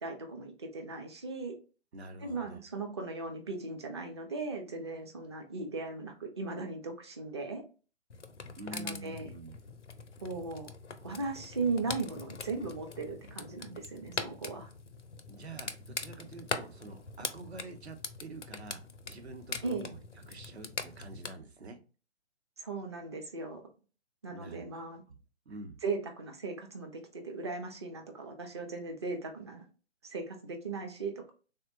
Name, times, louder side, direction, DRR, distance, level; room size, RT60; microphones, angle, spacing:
voice 1, 0.0-1.5 2.2-7.6 8.7-9.3 10.2-10.7 11.0-14.7 19.6-19.9 22.6-23.6 24.2-25.0 25.8-29.6 30.0-31.3, right 3 dB, 25° right, 0.4 m, -38 dB
voice 2, 1.9-2.6 8.6-9.8 15.3-20.0 20.3-21.8 24.3-24.6 25.1-25.2 25.5-25.8, right 2 dB, 65° right, 0.8 m, -46 dB
sound 1, 8.1-21.3, left 4 dB, 90° left, 0.5 m, -42 dB
3.5 x 2.1 x 2.5 m
figure-of-eight pair, 130°, 35 cm